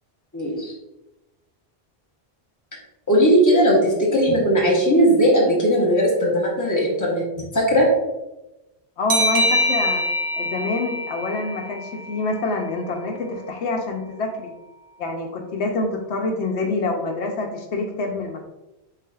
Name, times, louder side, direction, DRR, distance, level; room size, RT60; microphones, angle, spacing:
voice 1, 0.3-0.7 3.1-7.2 7.5-7.9, equal, 20° left, -4 dB, 1.0 m, -18 dB
voice 2, 9.0-10.0 10.4-14.5 15.0-18.4, left 3 dB, 85° left, 3 dB, 0.9 m, -26 dB
sound 1, 9.1-12.4, equal, 85° right, 1.0 m, -24 dB
4.8 x 3.7 x 2.3 m, 0.99 s
omnidirectional pair, 1.1 m